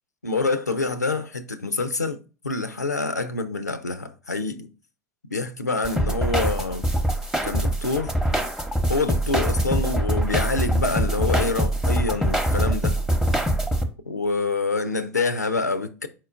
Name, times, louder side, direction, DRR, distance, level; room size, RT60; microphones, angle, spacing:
voice 1, 0.2-2.2 2.4-4.7 5.3-6.9 7.4-8.1 8.9-13.0 14.1-16.1, left 3 dB, 90° left, 0.4 m, -26 dB
sound 1, 5.8-13.8, equal, 5° right, 0.7 m, -23 dB
4.5 x 4.4 x 2.4 m
figure-of-eight pair, 80°, 9 cm